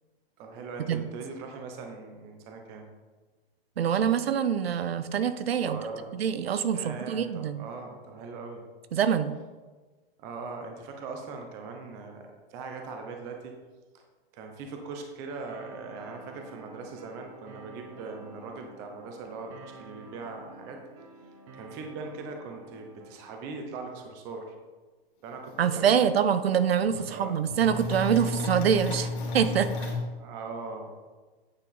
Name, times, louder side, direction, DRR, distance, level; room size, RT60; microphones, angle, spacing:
voice 1, 0.4-2.8 5.6-6.2 6.7-8.6 10.2-13.5 13.9-14.0 14.3-20.8 21.5-24.5 25.2-26.1 27.0-27.4 30.2-30.9, right 4 dB, 10° right, 3 dB, 0.3 m, -40 dB
voice 2, 3.8-5.8 6.1-7.7 8.9-9.4 25.6-29.9, right 8 dB, 80° right, 12 dB, 0.8 m, -25 dB
sound 1, 15.5-23.5, right 2 dB, 30° right, 0.9 m, -49 dB
sound 2, 25.5-25.6 25.9-26.0 26.5-27.1 27.4-30.0, left 3 dB, 50° left, 2.6 m, -33 dB
9.0 x 5.6 x 3.9 m, 1.3 s
hypercardioid pair, 150°, 30 cm